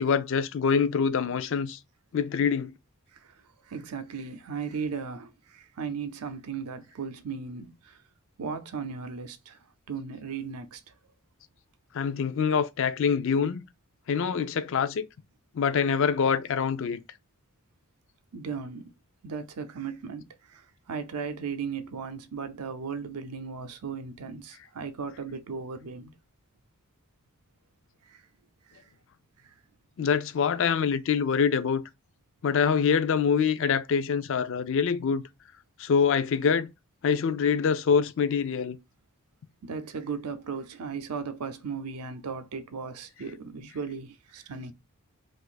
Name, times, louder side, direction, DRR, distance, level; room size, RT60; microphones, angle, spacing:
voice 1, 0.0-1.8 2.1-2.7 11.9-13.6 14.1-15.1 15.5-17.0 30.0-31.8 32.4-35.2 35.8-36.7 37.0-38.8, left 6 dB, 60° left, 0.4 m, -25 dB
voice 2, 3.7-8.0 8.4-9.6 9.9-10.9 18.3-18.9 19.2-26.1 28.1-28.2 28.7-28.8 29.4-29.5 39.6-44.7, right 5 dB, 90° right, 0.6 m, -36 dB
2.5 x 2.5 x 3.8 m
head